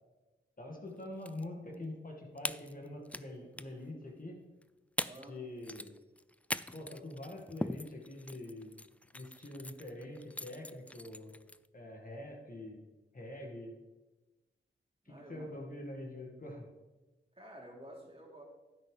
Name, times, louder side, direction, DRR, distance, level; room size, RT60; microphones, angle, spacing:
voice 1, 0.6-4.4 5.3-5.9 6.7-8.8 9.1-11.4 11.7-12.9 13.1-13.8 15.1-16.7, left 1 dB, 45° left, 0 dB, 2.1 m, -45 dB
sound 1, 1.0-1.4 1.7-1.8 2.4-3.3 3.5-3.8 4.6-4.7 5.0-5.3 5.6-11.7, left 1 dB, 5° left, 0.3 m, -41 dB
voice 2, 5.0-5.4 15.1-15.5 17.4-18.4, right 1 dB, 30° right, -2 dB, 2.9 m, -51 dB
10.5 x 8.6 x 3.4 m, 1.1 s
cardioid pair, 45°, 21 cm